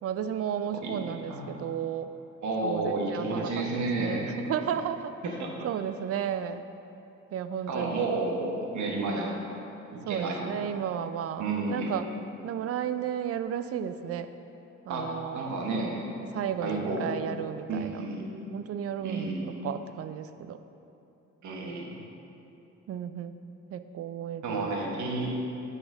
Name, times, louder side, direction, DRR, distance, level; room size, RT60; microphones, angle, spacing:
voice 1, 0.0-2.1 2.6-5.1 5.6-6.7 7.3-8.1 10.0-12.1 12.4-14.3 14.9-15.5 16.3-18.0 18.5-20.6 22.9-23.4 23.7-24.7, right 9 dB, 50° right, 11 dB, 0.4 m, -33 dB
voice 2, 0.8-1.6 2.4-4.3 5.4-5.5 7.7-9.3 9.9-10.5 11.4-12.0 14.9-15.1 15.3-16.1 16.6-17.0 17.7-18.3 19.0-19.5 21.4-21.9 24.4-25.4, right 3 dB, 70° right, -1 dB, 1.4 m, -31 dB
7.8 x 4.1 x 6.1 m, 2.9 s
cardioid pair, 90°, 30 cm